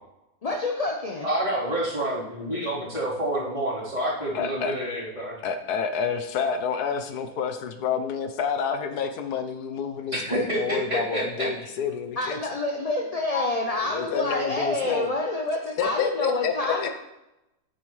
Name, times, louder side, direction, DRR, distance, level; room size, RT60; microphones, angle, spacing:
voice 1, 0.4-1.3 12.2-16.9, left 2 dB, 40° left, 1 dB, 0.6 m, -28 dB
voice 2, 1.2-5.4 6.8-6.9 7.3-7.4 7.9-8.1 10.1-11.5 13.3-13.5, right 1 dB, 25° right, -9 dB, 3.9 m, -28 dB
voice 3, 4.3-4.7 5.4-12.4 13.7-15.1 15.8-16.9, left 6 dB, 80° left, 7 dB, 1.3 m, -29 dB
9.4 x 9.0 x 3.2 m, 0.91 s
omnidirectional pair, 1.6 m